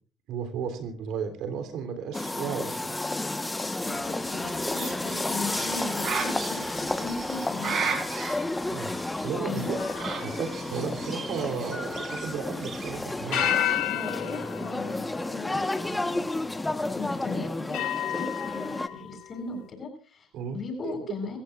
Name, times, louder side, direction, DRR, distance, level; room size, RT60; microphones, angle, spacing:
voice 1, 0.3-2.9 8.7-8.9 9.2-9.8 10.1-13.4 20.3-20.6 20.8-20.9, right 6 dB, 70° right, 8 dB, 3.2 m, -34 dB
sound 1, 2.1-18.9, left 2 dB, 10° left, 1.2 m, -32 dB
voice 2, 3.8-8.0 9.4-9.7 13.9-16.2 16.9-20.3 20.5-21.4, left 3 dB, 40° left, 5 dB, 7.3 m, -38 dB
Bird, 3.9-13.8, right 6 dB, 45° right, 4.0 m, -37 dB
sound 2, 9.8-12.7 13.3-16.1 16.7-16.8 17.7-19.3, left 14 dB, 75° left, 1.5 m, -33 dB
25.5 x 15.0 x 2.5 m, 0.39 s
cardioid pair, 105°, 0 cm